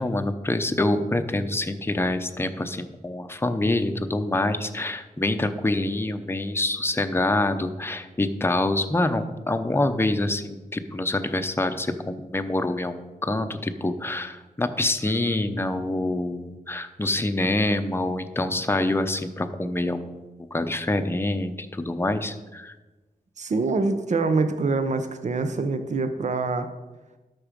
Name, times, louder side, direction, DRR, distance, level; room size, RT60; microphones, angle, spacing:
voice 1, 0.0-20.2 20.5-22.7, left 2 dB, 15° left, 8 dB, 0.7 m, -26 dB
voice 2, 23.4-26.7, right 3 dB, 55° right, 9 dB, 0.8 m, -25 dB
12.5 x 6.1 x 5.1 m, 1.2 s
wide cardioid pair, 105°, 15 cm